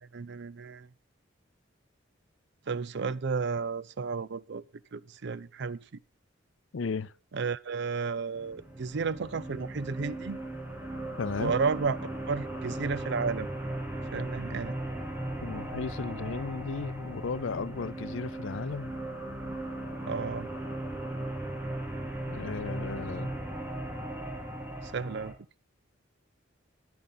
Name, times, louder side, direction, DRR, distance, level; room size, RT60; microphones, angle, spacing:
voice 1, 0.1-0.9 2.7-4.6 4.9-6.0 7.3-10.4 11.4-12.0 12.3-13.5 14.1-14.8 20.1-20.5 24.8-25.3, right 5 dB, 60° right, 0.5 m, -32 dB
voice 2, 6.7-7.1 11.2-11.6 15.4-18.9 22.3-23.3, left 4 dB, 70° left, 0.5 m, -35 dB
sound 1, 8.3-25.3, right 1 dB, 10° right, 2.5 m, -37 dB
14.5 x 10.5 x 4.1 m
head